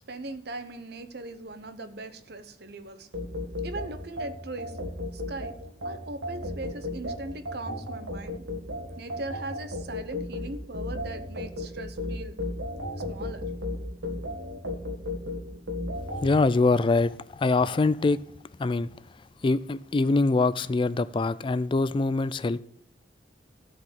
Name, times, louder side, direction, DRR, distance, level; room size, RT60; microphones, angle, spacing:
voice 1, 0.1-3.1 3.6-4.8 5.1-5.6 5.8-8.5 8.8-12.4 13.1-13.4, right 2 dB, 60° right, 1.0 m, -39 dB
sound 1, 3.1-16.3, left 1 dB, 90° right, 2.1 m, -34 dB
voice 2, 16.2-18.2 18.6-18.9 19.4-22.6, left 3 dB, 30° left, 0.3 m, -24 dB
14.5 x 4.9 x 9.2 m
head